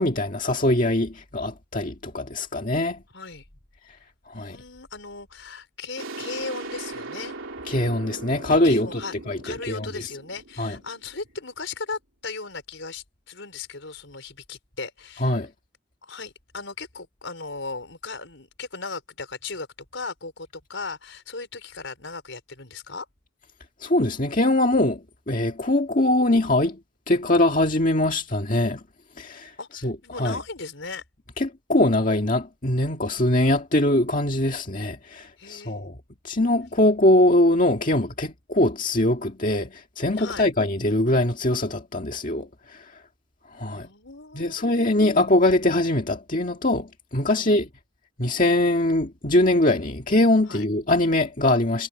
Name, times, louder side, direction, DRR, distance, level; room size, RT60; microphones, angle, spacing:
voice 1, 0.0-3.0 4.3-4.6 7.7-9.0 9.3-9.9 10.6-10.8 15.2-15.5 23.8-26.8 27.1-28.8 29.2-29.6 29.8-30.4 31.4-36.0 36.2-43.0 43.5-43.9 44.3-47.7 48.2-51.9, left 1 dB, 40° left, 1.9 m, -22 dB
voice 2, 3.1-3.4 4.3-7.4 8.6-9.1 9.4-15.4 16.0-19.7 19.9-23.1 29.6-31.0 35.4-35.8 37.9-38.1 40.2-40.5 43.7-45.1 47.3-47.6 50.5-50.6, left 4 dB, 70° left, 4.8 m, -37 dB
sound 1, 6.0-11.4, right 2 dB, 80° right, 3.0 m, -39 dB
head